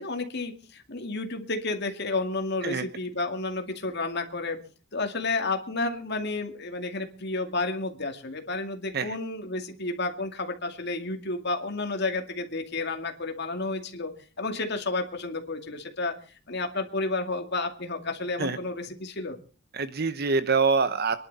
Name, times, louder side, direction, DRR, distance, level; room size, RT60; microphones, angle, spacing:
voice 1, 0.0-4.6 4.9-14.1 14.4-16.1 16.5-19.4, left 3 dB, 50° left, 5 dB, 2.3 m, -31 dB
voice 2, 19.7-21.2, right 4 dB, 50° right, 12 dB, 0.9 m, -25 dB
26.0 x 11.0 x 4.2 m, 0.37 s
head